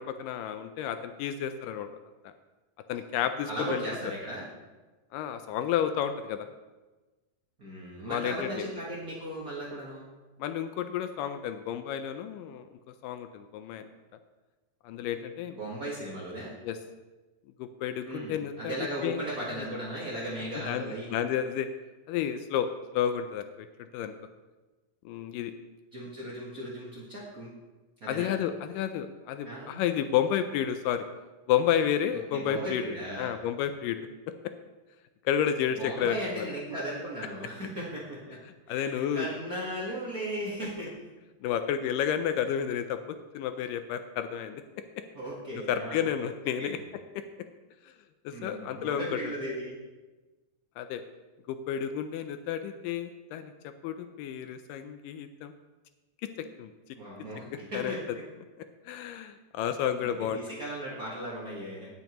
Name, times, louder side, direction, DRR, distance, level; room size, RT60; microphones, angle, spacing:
voice 1, 0.0-1.9 2.2-2.3 2.9-3.8 5.1-6.5 8.1-8.7 10.4-12.7 13.0-13.9 14.8-15.6 16.6-16.8 17.6-18.8 19.0-19.2 20.7-21.7 22.1-22.7 22.9-23.7 23.9-24.1 25.1-25.5 28.1-31.0 31.5-34.1 35.3-36.5 38.7-39.3 41.4-44.6 45.7-46.8 47.2-47.3 48.3-49.3 50.8-51.0 51.5-53.5 53.8-55.5 56.6-56.7 57.7-57.9 58.9-60.4, left 9 dB, 80° left, 9 dB, 2.0 m, -31 dB
voice 2, 3.4-4.4 7.6-10.1 15.5-16.5 18.1-21.1 25.9-27.5 28.0-28.3 29.4-29.8 32.3-33.4 35.8-38.4 38.7-40.9 45.1-46.0 46.6-46.8 48.3-49.8 56.9-58.0 60.0-61.9, right 1 dB, 80° right, -6 dB, 0.8 m, -37 dB
17.5 x 7.1 x 3.0 m, 1.2 s
omnidirectional pair, 4.2 m